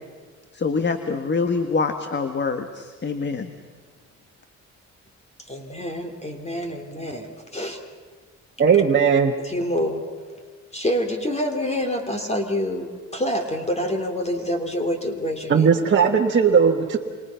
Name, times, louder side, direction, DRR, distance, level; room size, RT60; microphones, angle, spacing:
voice 1, 0.5-3.5, left 4 dB, 35° left, 7 dB, 1.6 m, -25 dB
voice 2, 5.5-7.8 9.4-10.0 10.7-15.9, equal, 20° left, 5 dB, 3.1 m, -27 dB
voice 3, 8.6-9.3 15.5-17.0, right 6 dB, 40° right, 0 dB, 1.6 m, -17 dB
28.0 x 27.5 x 5.8 m, 1.5 s
cardioid pair, 90°, 30 cm